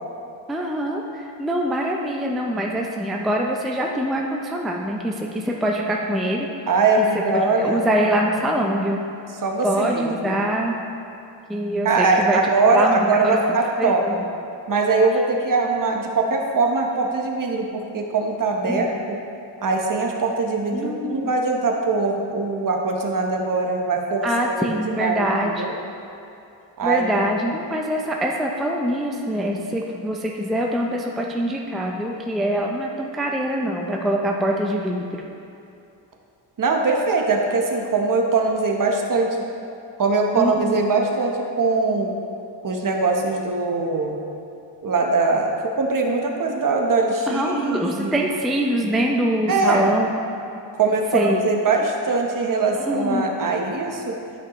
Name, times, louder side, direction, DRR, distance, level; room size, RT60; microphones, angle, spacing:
voice 1, 0.5-6.5 7.0-7.1 7.3-9.0 9.6-10.8 11.5-12.4 12.7-13.4 13.8-14.2 18.7-18.9 20.7-21.3 24.2-25.6 26.8-35.2 40.3-40.8 47.3-50.1 51.1-51.4 52.8-53.3, equal, ahead, 0 dB, 0.4 m, -24 dB
voice 2, 6.7-7.8 9.4-10.3 11.8-14.0 14.7-19.2 19.6-24.7 24.9-25.7 26.8-27.2 36.6-39.3 40.0-42.1 42.6-44.2 44.8-48.3 49.5-49.9 50.7-54.1, right 3 dB, 45° right, 1 dB, 0.9 m, -22 dB
12.0 x 5.3 x 3.0 m, 2.7 s
wide cardioid pair, 120°, 46 cm